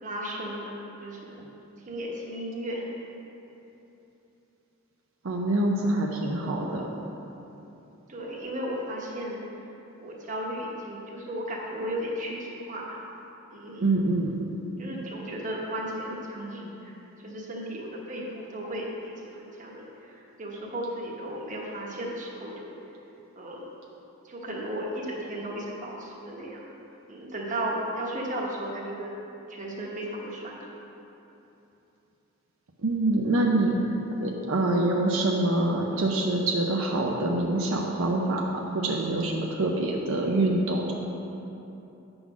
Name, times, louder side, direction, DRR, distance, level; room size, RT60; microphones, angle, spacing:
voice 1, 0.0-1.5 1.9-2.9 8.1-9.4 10.0-13.0 13.5-13.9 14.8-22.7 23.4-23.7 24.2-26.7 27.1-29.1 29.5-30.6, right 1 dB, 40° right, -3 dB, 1.1 m, -35 dB
voice 2, 5.2-6.8 13.8-14.3 32.8-33.8 34.2-38.5 38.7-40.9, right 2 dB, 75° right, -1 dB, 0.6 m, -25 dB
8.7 x 3.9 x 6.0 m, 3.0 s
head